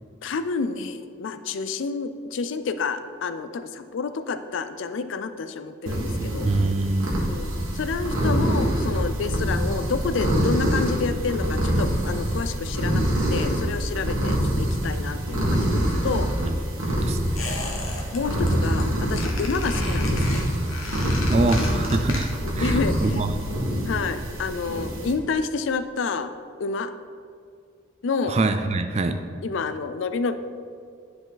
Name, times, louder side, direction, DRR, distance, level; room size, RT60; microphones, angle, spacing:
voice 1, 0.2-6.5 7.3-13.0 13.3-16.3 18.1-20.5 22.4-23.2 23.9-26.3 26.6-26.9 28.0-28.4 29.4-30.3, left 4 dB, 65° left, 11 dB, 0.4 m, -29 dB
sound 1, 5.9-25.1, equal, 80° right, 1.6 m, -25 dB
voice 2, 6.4-7.4 16.4-17.6 21.3-23.4 28.2-29.2, right 2 dB, 30° right, 8 dB, 0.3 m, -25 dB
Squeak, 17.4-18.2 18.5-18.8 19.1-22.6 22.8-22.9, left 3 dB, 85° left, 1.2 m, -35 dB
10.0 x 4.8 x 3.9 m, 2.3 s
head